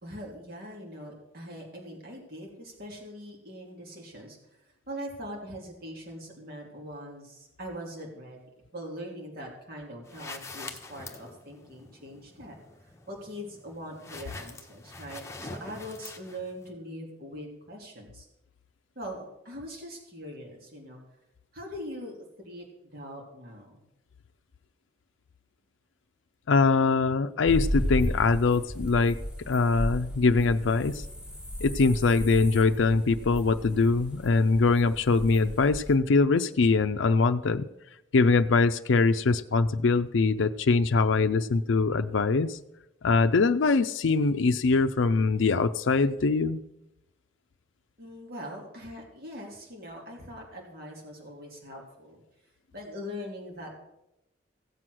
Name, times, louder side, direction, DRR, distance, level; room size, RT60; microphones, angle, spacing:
voice 1, 0.0-4.4 4.9-12.5 13.1-18.3 18.9-21.0 21.5-22.7 22.9-23.8 48.0-52.2 52.7-53.7, equal, 50° right, -1 dB, 2.8 m, -42 dB
sound 1, 10.0-16.7, left 3 dB, 15° left, 1.1 m, -45 dB
voice 2, 26.5-29.2 29.5-31.0 31.6-37.7 38.1-42.6 43.0-46.6, left 4 dB, 80° left, 7 dB, 0.5 m, -23 dB
sound 2, 27.5-35.9, equal, 5° right, 1.8 m, -35 dB
16.0 x 7.6 x 6.2 m, 0.89 s
head